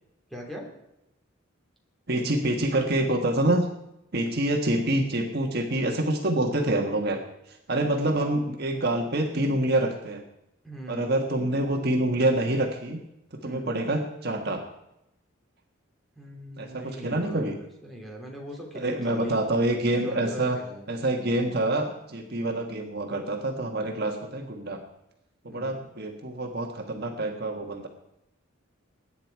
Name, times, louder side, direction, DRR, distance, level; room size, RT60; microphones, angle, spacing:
voice 1, 0.3-0.7 10.6-11.2 13.4-13.7 16.1-19.4 20.0-21.1 25.5-25.8, equal, ahead, -1 dB, 3.0 m, -40 dB
voice 2, 2.1-3.7 4.1-7.2 7.7-10.2 10.9-13.0 13.3-14.6 16.6-17.6 18.7-20.6 20.9-24.8 25.4-27.9, right 1 dB, 50° right, 3 dB, 1.5 m, -26 dB
21.5 x 9.8 x 4.7 m, 0.84 s
head